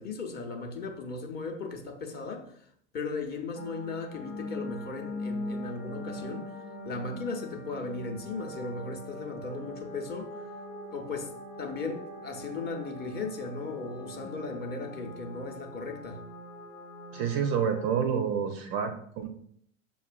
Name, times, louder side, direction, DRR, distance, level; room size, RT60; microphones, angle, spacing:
voice 1, 0.0-2.5 2.9-6.5 6.8-10.4 10.9-11.3 11.6-16.2, left 3 dB, 25° left, 2 dB, 0.7 m, -37 dB
sound 1, 3.6-18.0, left 1 dB, 90° left, 0.8 m, -42 dB
voice 2, 17.1-19.3, right 7 dB, 35° right, 6 dB, 0.4 m, -28 dB
6.8 x 2.4 x 2.2 m, 0.66 s
hypercardioid pair, 90°, 37 cm